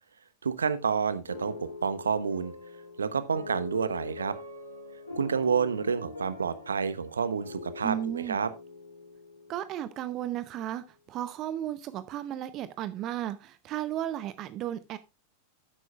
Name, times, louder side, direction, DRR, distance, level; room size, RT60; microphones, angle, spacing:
voice 1, 0.4-2.6 3.0-4.4 5.1-8.5, right 6 dB, 70° right, 1.0 m, -29 dB
sound 1, 1.3-10.4, left 2 dB, 85° left, 6.3 m, -44 dB
voice 2, 7.8-8.4 9.5-15.0, right 11 dB, 35° right, 0.7 m, -34 dB
12.5 x 9.9 x 2.4 m
figure-of-eight pair, 90°, 0 cm